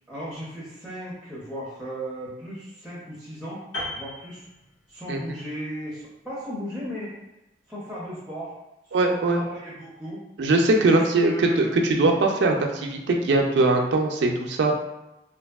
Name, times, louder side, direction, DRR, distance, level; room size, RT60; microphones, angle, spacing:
voice 1, 0.1-3.6 3.9-4.5 4.9-7.2 7.7-8.5 9.0-10.2 10.8-11.8, right 1 dB, 5° right, -8 dB, 0.5 m, -36 dB
Piano, 3.7-5.2 5.5-5.7, left 1 dB, 75° left, 1.1 m, -36 dB
voice 2, 8.9-9.4 10.4-14.7, right 2 dB, 70° right, 2 dB, 0.3 m, -21 dB
2.8 x 2.6 x 2.3 m, 0.93 s
head